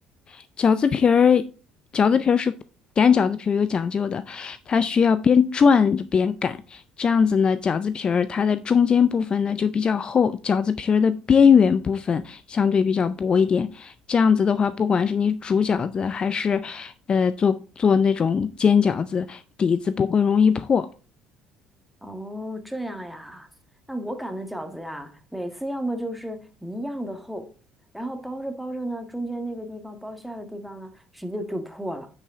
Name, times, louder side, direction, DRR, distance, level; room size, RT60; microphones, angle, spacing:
voice 1, 0.3-1.5 1.9-2.6 3.0-20.9, left 6 dB, 40° left, 0.4 m, -21 dB
voice 2, 22.0-23.5 23.9-27.5 27.9-32.1, right 1 dB, ahead, 1.5 m, -33 dB
8.9 x 5.5 x 3.6 m
hypercardioid pair, 65°, 3 cm